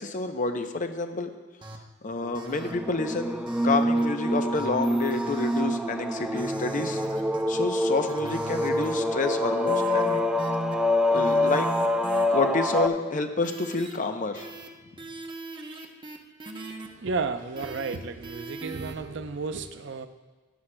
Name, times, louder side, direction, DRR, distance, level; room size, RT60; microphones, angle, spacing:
voice 1, 0.0-1.3 2.0-7.0 7.5-10.2 11.1-11.7 12.3-14.5, left 3 dB, 40° left, 7 dB, 0.6 m, -29 dB
sound 1, 1.6-1.8 2.3-2.7 3.5-4.0 4.5-5.6 6.3-7.5 8.1-8.9 9.7-10.7 11.1-12.2 13.4-14.0 14.3-14.7 15.0-16.9 17.6-18.0 18.2-18.9, right 2 dB, 25° right, 0.8 m, -39 dB
sound 2, 2.6-12.9, left 1 dB, 5° right, 0.4 m, -26 dB
voice 2, 17.0-20.1, right 4 dB, 60° right, 9 dB, 0.6 m, -32 dB
15.5 x 11.0 x 2.2 m, 1.3 s
head